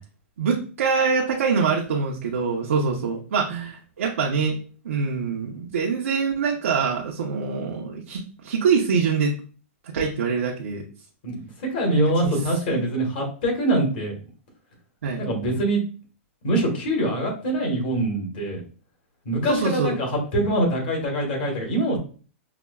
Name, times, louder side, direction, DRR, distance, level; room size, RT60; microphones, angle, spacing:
voice 1, 0.4-4.6 4.8-9.3 9.9-10.8 11.9-12.4 12.7-12.9 15.0-15.2 19.5-19.9, right 5 dB, 85° right, -1 dB, 0.7 m, -24 dB
voice 2, 11.2-14.1 15.2-15.8 16.4-18.6 19.2-22.0, right 1 dB, 45° left, 0 dB, 1.4 m, -24 dB
5.7 x 2.2 x 2.3 m, 0.38 s
supercardioid pair, 175°, 7 cm